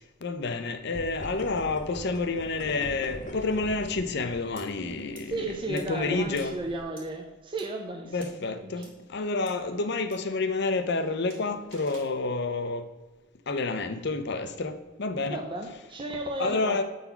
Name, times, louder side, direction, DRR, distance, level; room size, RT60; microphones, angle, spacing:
voice 1, 0.0-6.6 8.0-12.9 13.5-15.4 16.4-16.8, left 3 dB, 60° left, 0.7 m, -29 dB
sound 1, 0.9-6.8, left 1 dB, 40° left, 1.0 m, -43 dB
sound 2, 4.6-4.7 5.1-5.2 5.8-5.9 6.4-6.5 7.0-7.1 7.6-7.7 8.2-8.3 8.8-8.9 9.5-9.6 10.1-10.2 11.3-12.1, right 3 dB, 75° right, 1.8 m, -49 dB
voice 2, 5.3-8.8 15.3-16.8, right 1 dB, 25° right, 0.6 m, -34 dB
8.3 x 4.0 x 5.7 m
head